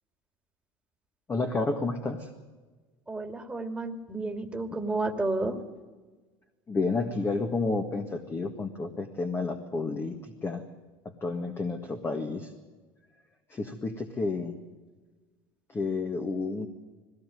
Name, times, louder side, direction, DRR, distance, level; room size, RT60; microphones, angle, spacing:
voice 1, 1.3-2.3 6.7-10.6 11.1-12.5 13.5-14.5 15.7-16.7, left 3 dB, 20° left, 4 dB, 1.9 m, -30 dB
voice 2, 3.1-5.6, right 2 dB, 10° right, 4 dB, 2.4 m, -31 dB
20.5 x 17.5 x 9.4 m, 1.3 s
supercardioid pair, 125°, 12 cm